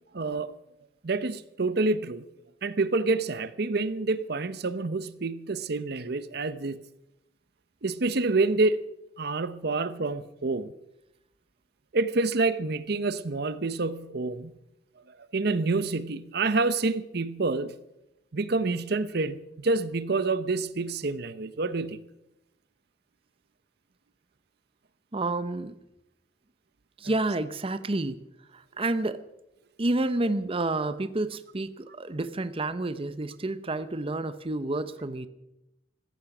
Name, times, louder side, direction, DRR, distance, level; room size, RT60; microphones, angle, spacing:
voice 1, 0.1-0.6 1.0-2.2 2.6-6.8 7.8-8.8 9.2-10.7 11.9-14.6 15.3-17.7 18.3-22.0, right 3 dB, 60° right, 0.8 m, -27 dB
voice 2, 25.1-25.8 27.0-28.2 28.5-29.2 29.8-35.3, right 2 dB, 30° right, 0.7 m, -29 dB
15.5 x 15.0 x 6.0 m
head